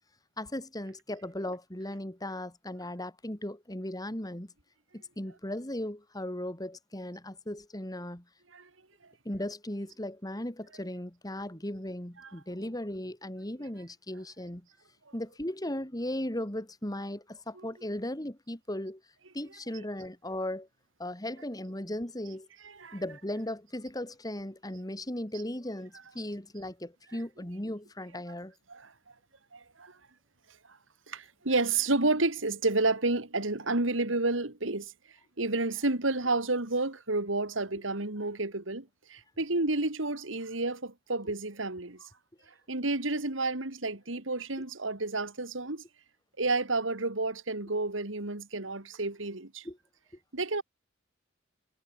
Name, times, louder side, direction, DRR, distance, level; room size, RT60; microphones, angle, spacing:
voice 1, 0.4-4.5 4.9-8.2 9.2-14.7 15.1-19.0 19.3-20.7 21.0-22.5 22.9-28.5 49.6-49.8, left 1 dB, 20° left, 2.9 m, -37 dB
voice 2, 22.6-23.0 28.7-28.9 29.5-29.9 31.1-34.9 35.4-42.0 42.7-45.8 46.4-49.7 50.3-50.6, right 2 dB, 80° right, 2.7 m, -30 dB
head